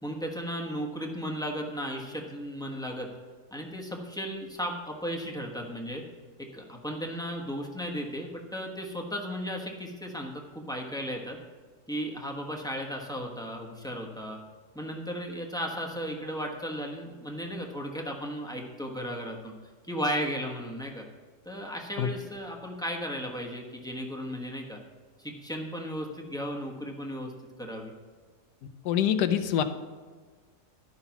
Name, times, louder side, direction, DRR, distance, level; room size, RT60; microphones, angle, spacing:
voice 1, 0.0-3.1 3.5-6.0 6.5-11.4 11.9-14.4 14.7-19.5 19.9-21.0 21.4-24.8 25.2-27.3 27.6-27.9, equal, 5° left, 0 dB, 1.0 m, -35 dB
voice 2, 28.8-29.6, left 9 dB, 80° left, 10 dB, 1.2 m, -25 dB
12.0 x 5.7 x 5.9 m, 1.5 s
omnidirectional pair, 1.7 m